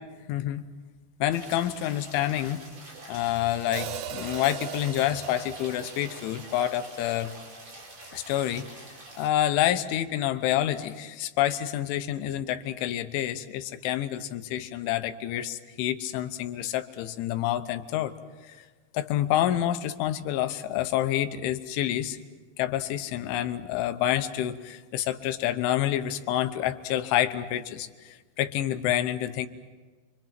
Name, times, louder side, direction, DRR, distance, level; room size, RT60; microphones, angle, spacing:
voice 1, 0.3-0.7 1.2-2.6 3.1-7.3 8.1-8.7 9.2-18.1 18.5-18.6 18.9-22.2 22.6-29.5, left 12 dB, 80° left, 9 dB, 3.3 m, -28 dB
sound 1, 1.3-9.3, right 2 dB, 35° right, 4.4 m, -46 dB
Hi-hat, 3.7-7.9, right 11 dB, 85° right, 3.5 m, -40 dB
29.5 x 24.0 x 6.0 m, 1.4 s
omnidirectional pair, 5.7 m